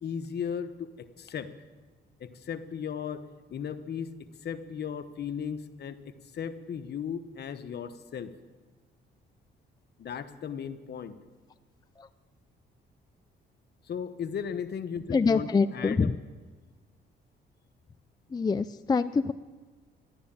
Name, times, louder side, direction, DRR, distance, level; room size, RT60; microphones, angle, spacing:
voice 1, 0.0-1.5 2.2-3.2 3.5-4.1 4.4-8.3 10.0-11.2 13.8-16.1, left 7 dB, 55° left, 10 dB, 1.1 m, -36 dB
voice 2, 15.1-16.2 18.3-19.3, left 4 dB, 20° left, 11 dB, 0.4 m, -25 dB
13.0 x 11.5 x 8.7 m, 1.4 s
cardioid pair, 90°, 20 cm